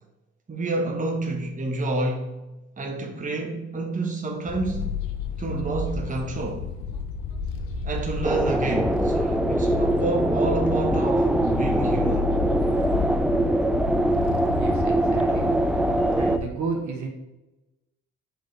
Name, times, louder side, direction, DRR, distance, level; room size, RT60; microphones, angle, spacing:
voice 1, 0.5-4.9 5.4-6.7 7.8-12.3, right 2 dB, 25° right, 1.0 m, -29 dB
sound 1, 4.5-16.5, left 5 dB, 85° left, 0.7 m, -31 dB
sound 2, 8.2-16.4, right 1 dB, 5° right, 0.3 m, -23 dB
voice 2, 14.5-15.9 16.2-17.1, right 4 dB, 60° right, 1.4 m, -33 dB
7.8 x 3.4 x 4.0 m
supercardioid pair, 60°, 33 cm